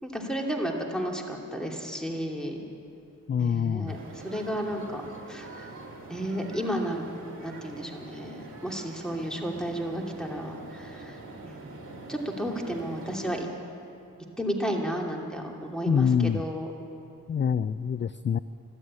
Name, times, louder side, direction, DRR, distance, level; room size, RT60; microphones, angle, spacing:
voice 1, 0.0-2.6 3.4-4.0 4.2-5.0 5.3-5.7 6.1-7.0 7.4-11.2 11.4-11.8 12.1-13.5 14.4-16.7, equal, ahead, 1 dB, 2.7 m, -32 dB
voice 2, 3.3-4.0 15.9-16.4 17.3-18.4, left 7 dB, 35° left, 15 dB, 0.4 m, -25 dB
sound 1, 3.9-13.4, right 2 dB, 55° right, 2.3 m, -44 dB
13.0 x 12.5 x 8.8 m, 2.7 s
cardioid pair, 45°, 35 cm